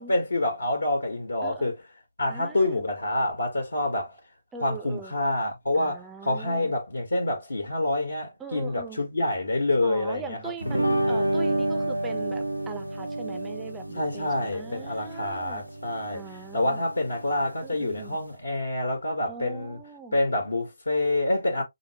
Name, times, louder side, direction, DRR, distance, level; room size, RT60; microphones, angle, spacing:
voice 1, 0.0-1.8 2.2-4.2 4.6-10.4 14.0-16.2 16.5-19.8 20.1-21.6, left 1 dB, 70° left, 1.3 m, -27 dB
voice 2, 1.4-1.7 2.3-2.8 4.5-5.1 5.7-6.7 8.4-9.1 9.8-15.6 16.1-16.9 17.6-18.2 19.3-20.2, right 5 dB, 10° right, 0.6 m, -41 dB
sound 1, 10.6-18.3, right 1 dB, 90° right, 0.7 m, -30 dB
4.8 x 2.0 x 2.8 m
figure-of-eight pair, 145°, 0 cm